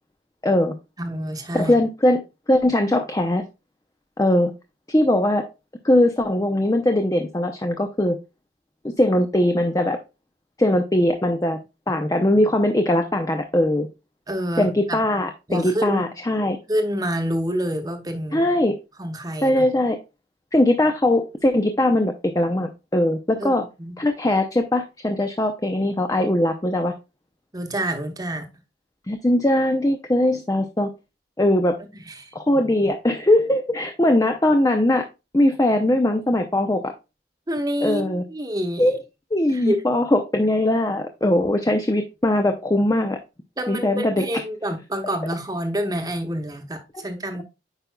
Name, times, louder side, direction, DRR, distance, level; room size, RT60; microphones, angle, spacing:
voice 1, 0.4-0.7 1.5-2.2 2.5-3.4 4.2-4.5 4.9-5.5 5.8-8.2 9.0-10.0 10.6-11.6 11.9-13.9 14.6-16.6 18.3-18.7 19.4-20.0 20.5-23.6 24.0-26.9 29.1-30.9 31.4-31.8 32.3-35.1 35.3-36.9 37.8-38.2 38.8-39.0 39.3-43.2 43.7-44.1, left 1 dB, 20° left, 0.5 m, -20 dB
voice 2, 1.0-1.8 14.3-15.0 15.5-16.1 16.7-18.4 19.0-19.7 23.4-24.0 27.5-28.5 31.9-32.3 37.5-39.0 39.5-39.8 43.6-47.4, equal, 20° right, 1.0 m, -27 dB
8.9 x 5.2 x 2.2 m
head